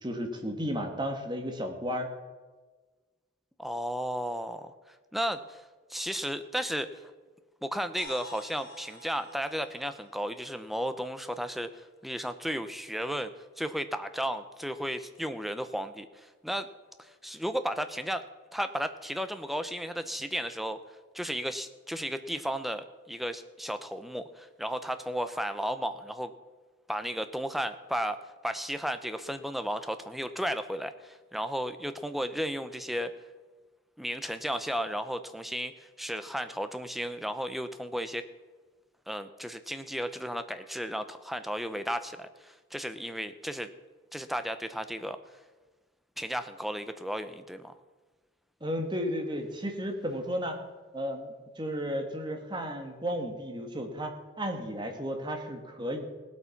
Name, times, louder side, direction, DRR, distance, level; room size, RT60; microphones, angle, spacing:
voice 1, 0.0-2.1 48.6-50.6 50.9-54.1 54.4-56.1, equal, 20° right, 4 dB, 1.5 m, -33 dB
voice 2, 3.6-4.7 5.1-7.0 7.6-16.7 17.0-18.3 18.5-20.8 21.1-26.3 26.9-33.1 34.0-38.2 39.1-43.7 44.1-45.2 46.2-47.7, equal, ahead, 10 dB, 0.6 m, -34 dB
sound 1, 8.0-11.7, left 1 dB, 45° left, 2.8 m, -50 dB
17.5 x 8.2 x 5.8 m, 1.3 s
head